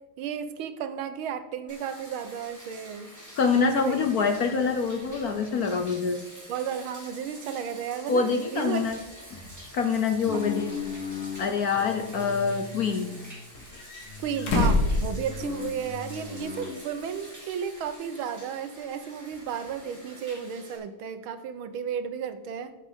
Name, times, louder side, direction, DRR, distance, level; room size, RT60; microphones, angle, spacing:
voice 1, 0.2-3.1 3.7-4.1 6.5-8.8 10.3-10.5 14.2-22.7, right 7 dB, 75° right, 10 dB, 1.6 m, -33 dB
Bathtub (filling or washing), 1.7-20.8, equal, 10° right, 3.4 m, -47 dB
voice 2, 3.4-6.2 8.1-9.0 9.6-10.8 11.4-13.1, left 5 dB, 60° left, 5 dB, 1.0 m, -25 dB
sound 1, 10.3-11.5 12.0-13.8 14.1-16.8, left 6 dB, 35° left, 1.0 m, -37 dB
sound 2, 10.7-10.8 11.7-12.6 13.5-15.9 16.2-16.3 17.9-18.0, left 2 dB, 90° left, 2.7 m, -28 dB
9.2 x 7.6 x 5.1 m, 1.2 s
omnidirectional pair, 2.3 m